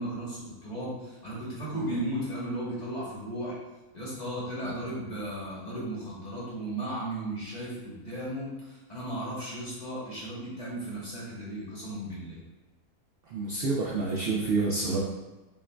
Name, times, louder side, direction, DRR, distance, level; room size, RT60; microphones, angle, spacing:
voice 1, 0.0-3.5 3.9-12.4, right 1 dB, 35° left, -7 dB, 1.0 m, -35 dB
voice 2, 13.3-15.0, right 3 dB, 80° right, -3 dB, 0.5 m, -28 dB
5.8 x 2.4 x 2.2 m, 1.1 s
omnidirectional pair, 1.5 m